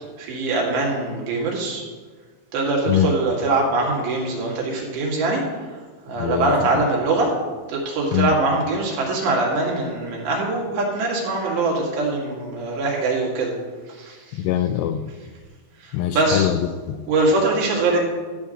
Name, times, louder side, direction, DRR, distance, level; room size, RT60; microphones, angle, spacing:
voice 1, 0.2-1.8 2.5-5.8 6.1-7.3 7.7-13.5 13.9-14.4 15.8-16.5 17.1-18.0, right 2 dB, 70° right, -2 dB, 4.2 m, -23 dB
voice 2, 6.2-6.9 8.1-8.3 14.3-15.1 15.9-17.1, left 10 dB, 85° left, 8 dB, 2.5 m, -23 dB
13.5 x 4.8 x 7.7 m, 1.5 s
omnidirectional pair, 5.2 m